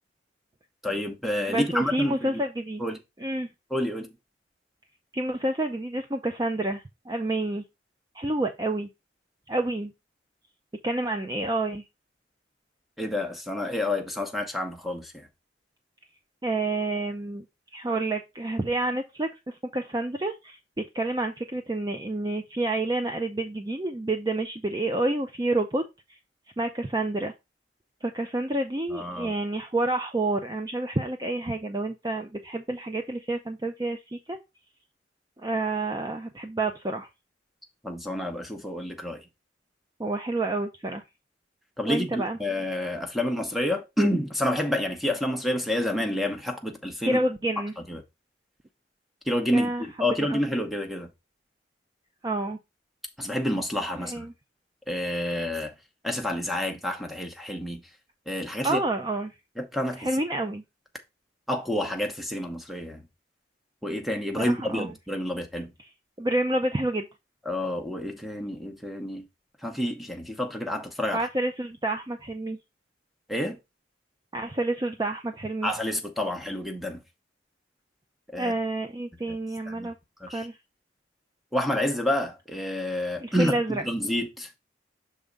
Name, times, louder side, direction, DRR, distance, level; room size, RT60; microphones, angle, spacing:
voice 1, 0.8-2.4 2.8-3.0 3.7-4.1 13.0-15.1 28.9-29.3 37.8-39.2 41.8-47.2 47.9-48.0 49.3-51.1 53.2-54.2 54.9-55.7 56.0-57.8 58.3-58.8 59.6-60.1 61.5-63.0 63.8-65.7 67.5-69.3 69.6-71.3 73.3-73.6 75.6-77.0 78.3-78.5 79.3-79.4 79.7-79.9 80.2-80.5 81.5-84.5, left 1 dB, ahead, 0.9 m, -29 dB
voice 2, 1.5-2.8 3.2-3.5 5.1-7.6 8.1-8.9 9.5-9.9 10.8-11.8 16.4-17.4 17.7-25.8 26.6-27.3 28.0-34.4 35.4-37.1 40.0-41.0 41.9-42.4 47.0-47.7 49.5-49.9 50.2-50.4 52.2-52.6 54.0-54.3 55.3-55.4 58.6-59.3 60.0-60.6 64.4-64.9 66.2-67.1 71.1-72.6 74.3-75.7 78.4-79.9 80.3-80.6 83.2-83.8, right 2 dB, 20° right, 0.5 m, -29 dB
6.4 x 3.5 x 5.1 m
head